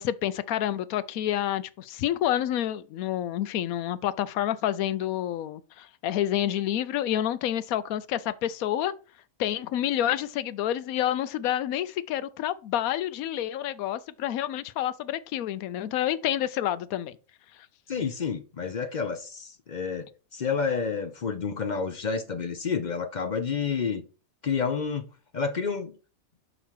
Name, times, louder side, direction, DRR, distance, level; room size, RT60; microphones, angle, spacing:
voice 1, 0.0-8.9 9.4-17.2, left 11 dB, 85° left, 1.1 m, -28 dB
voice 2, 17.9-24.0 24.4-25.1 25.3-25.9, left 5 dB, 50° left, 0.6 m, -29 dB
6.0 x 5.4 x 4.6 m
omnidirectional pair, 1.5 m